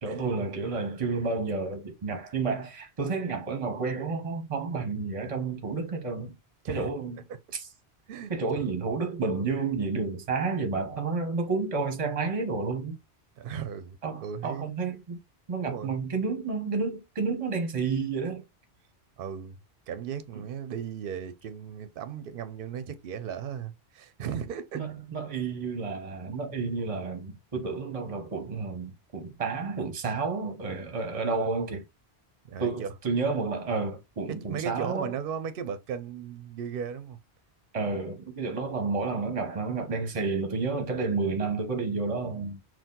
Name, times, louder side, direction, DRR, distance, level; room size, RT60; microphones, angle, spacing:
voice 1, 0.0-6.3 6.7-7.2 7.5-7.6 8.3-13.0 14.0-15.2 15.5-18.4 24.7-31.8 32.6-35.1 37.7-42.6, right 4 dB, 35° right, 0.9 m, -30 dB
voice 2, 8.1-8.7 13.4-14.7 15.6-15.9 19.2-19.6 19.9-24.8 32.4-32.9 34.3-37.2, right 7 dB, 60° right, 0.7 m, -36 dB
4.4 x 2.4 x 3.7 m
omnidirectional pair, 1.1 m